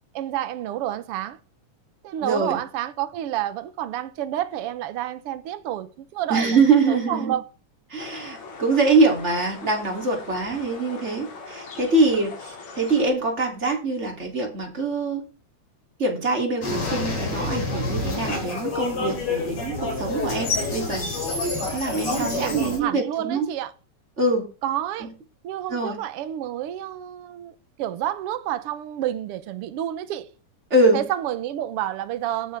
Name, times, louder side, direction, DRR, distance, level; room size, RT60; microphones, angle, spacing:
voice 1, 0.1-1.4 2.0-6.6 6.8-7.5 22.2-23.7 24.6-25.1 25.4-30.3 30.9-32.6, right 12 dB, 60° right, 1.8 m, -29 dB
voice 2, 2.2-2.6 6.3-7.3 7.9-15.2 16.0-21.1 21.6-23.5 24.2-24.5 25.0-25.1 25.7-26.0 30.7-31.0, right 3 dB, 20° right, 3.4 m, -23 dB
sound 1, 8.0-13.1, left 4 dB, 65° left, 4.0 m, -41 dB
sound 2, 16.6-22.8, left 2 dB, 50° left, 4.6 m, -27 dB
17.0 x 9.1 x 3.6 m
omnidirectional pair, 3.3 m